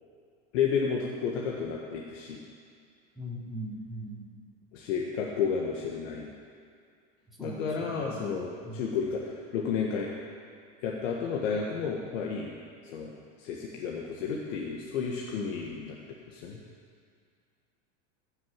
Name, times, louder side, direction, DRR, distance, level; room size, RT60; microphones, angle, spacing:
voice 1, 0.5-2.4 4.7-6.3 7.4-10.1 10.8-12.5 12.8-13.1 13.4-16.0 16.3-16.6, left 6 dB, 80° left, -2 dB, 1.7 m, -31 dB
voice 2, 3.1-4.2 7.4-8.2 8.6-8.9, right 1 dB, ahead, -6 dB, 3.0 m, -40 dB
15.5 x 6.9 x 7.3 m, 2.3 s
supercardioid pair, 135°, 38 cm